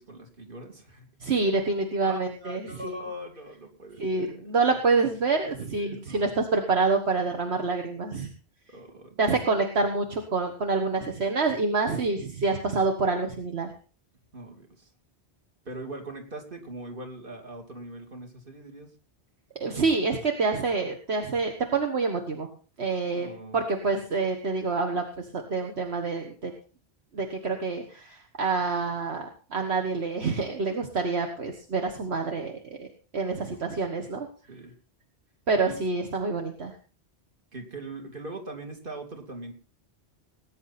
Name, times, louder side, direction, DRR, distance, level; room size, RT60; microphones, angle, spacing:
voice 1, 0.0-1.1 2.0-4.4 5.6-6.3 8.7-9.2 14.3-14.9 15.6-18.9 23.1-23.6 33.5-33.6 34.5-34.7 35.6-35.8 37.5-39.5, right 1 dB, 50° right, 3 dB, 2.9 m, -41 dB
voice 2, 1.2-3.0 4.0-8.3 9.2-13.7 19.6-22.5 22.8-26.5 27.1-32.5 32.8-32.9 33.1-34.3 35.5-36.7, right 3 dB, 65° right, 4 dB, 1.8 m, -27 dB
20.0 x 9.7 x 4.2 m, 0.38 s
omnidirectional pair, 1.2 m